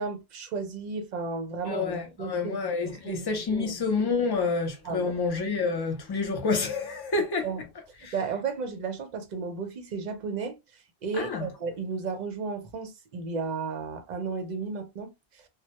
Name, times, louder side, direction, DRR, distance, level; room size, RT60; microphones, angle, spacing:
voice 1, 0.0-1.9 2.2-2.6 2.9-3.7 4.8-5.1 7.4-7.7 8.1-10.6 11.0-15.1, right 5 dB, 55° right, 0.6 m, -33 dB
voice 2, 1.7-7.5 8.0-8.1 11.2-11.5, left 4 dB, 35° left, 0.4 m, -28 dB
2.1 x 2.1 x 2.8 m
omnidirectional pair, 1.1 m